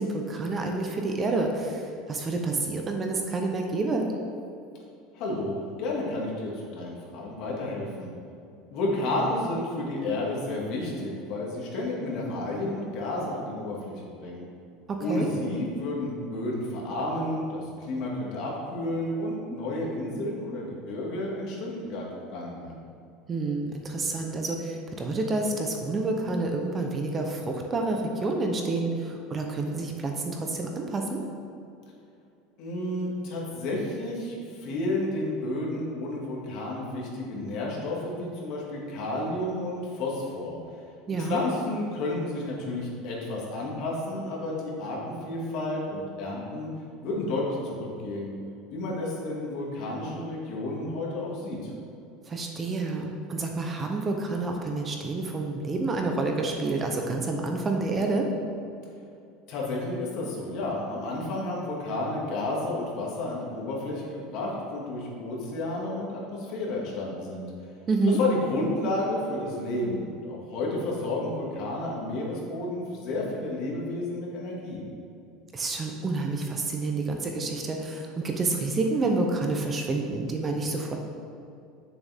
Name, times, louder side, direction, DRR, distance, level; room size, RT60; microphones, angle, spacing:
voice 1, 0.0-4.0 15.1-15.3 23.3-31.2 41.1-41.4 52.3-58.3 67.9-68.2 75.5-81.0, right 3 dB, 20° right, 2 dB, 0.7 m, -28 dB
voice 2, 5.1-8.1 8.7-14.5 15.0-22.0 22.3-22.8 32.6-40.6 41.2-46.7 47.0-48.3 48.7-51.7 59.5-67.5 68.2-74.8, left 2 dB, 50° left, -3 dB, 2.0 m, -31 dB
8.8 x 7.0 x 3.6 m, 2.6 s
supercardioid pair, 150°, 0 cm